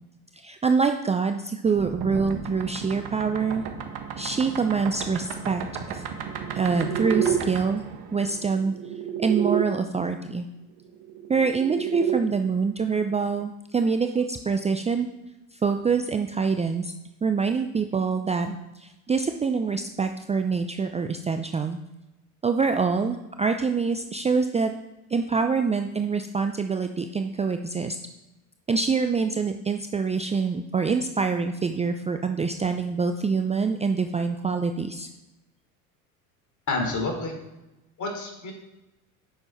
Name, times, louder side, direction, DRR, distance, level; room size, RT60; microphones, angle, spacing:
voice 1, 0.3-3.6 4.2-6.0 6.5-7.8 8.1-8.7 9.2-10.5 11.3-15.1 15.5-16.9 17.2-21.8 22.4-24.7 25.1-28.0 28.7-35.1, right 5 dB, 15° right, 7 dB, 0.6 m, -25 dB
sound 1, 1.8-9.7 10.9-12.2, right 8 dB, 60° right, 1.5 m, -31 dB
voice 2, 36.7-37.3 38.0-38.5, left 3 dB, 40° left, 2 dB, 3.4 m, -28 dB
10.0 x 6.9 x 4.4 m, 0.99 s
hypercardioid pair, 75°, 44 cm